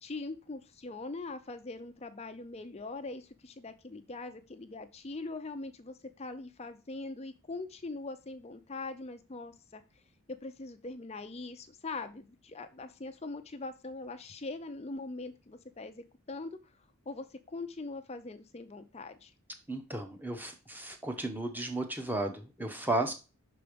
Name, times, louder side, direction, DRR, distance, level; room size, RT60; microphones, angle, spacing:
voice 1, 0.0-9.8 10.3-16.6 17.1-19.3, left 3 dB, 30° left, 9 dB, 0.5 m, -42 dB
voice 2, 19.7-23.1, right 2 dB, 10° right, 4 dB, 0.9 m, -34 dB
6.0 x 4.8 x 5.1 m, 0.31 s
head